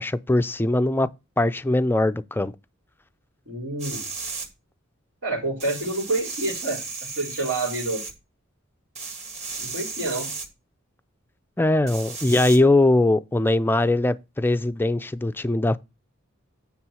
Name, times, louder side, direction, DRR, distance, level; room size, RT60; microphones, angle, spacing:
voice 1, 0.0-2.5 11.6-15.8, left 2 dB, 10° left, 0.4 m, -21 dB
voice 2, 3.4-4.0 5.2-8.0 9.6-10.3, right 2 dB, 80° right, 3.2 m, -28 dB
sound 1, 3.8-4.5 5.6-8.1 9.0-10.5 11.9-12.6, right 4 dB, 35° right, 2.1 m, -34 dB
9.2 x 3.6 x 6.2 m
head